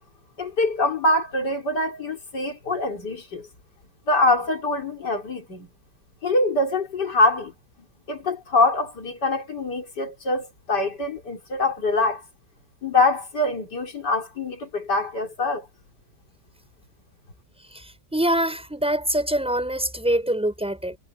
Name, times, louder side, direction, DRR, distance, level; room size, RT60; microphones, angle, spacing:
voice 1, 0.4-3.5 4.1-5.7 6.2-7.5 8.1-12.2 12.8-15.7, left 2 dB, 55° left, 4.5 m, -24 dB
voice 2, 18.1-21.0, right 1 dB, 5° right, 5.7 m, -24 dB
omnidirectional pair, 2.2 m